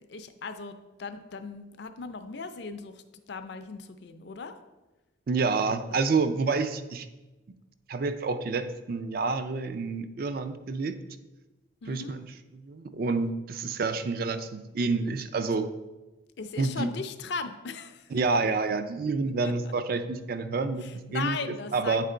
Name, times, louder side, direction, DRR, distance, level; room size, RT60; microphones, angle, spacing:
voice 1, 0.1-3.0 3.3-4.5 5.9-6.0 11.8-12.2 16.4-18.1 19.4-19.7 20.8-22.1, left 4 dB, 55° left, 8 dB, 0.4 m, -38 dB
voice 2, 5.3-7.1 7.9-11.0 11.9-12.3 12.5-15.7 16.6-16.9 18.1-21.4 21.7-22.1, right 4 dB, 45° right, 10 dB, 0.4 m, -28 dB
8.8 x 3.3 x 3.8 m, 1.1 s
head